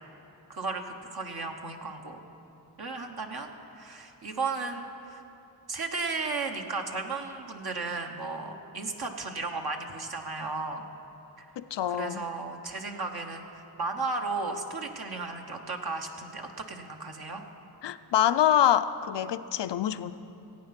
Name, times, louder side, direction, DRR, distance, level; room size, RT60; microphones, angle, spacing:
voice 1, 0.5-2.2 2.8-3.5 3.7-5.2 5.7-10.8 11.4-11.5 11.9-17.4, right 3 dB, 60° right, 2 dB, 1.2 m, -35 dB
voice 2, 11.6-12.3 17.8-20.1, left 10 dB, 75° left, 13 dB, 0.6 m, -25 dB
16.5 x 8.8 x 5.9 m, 2.9 s
cardioid pair, 55°, 42 cm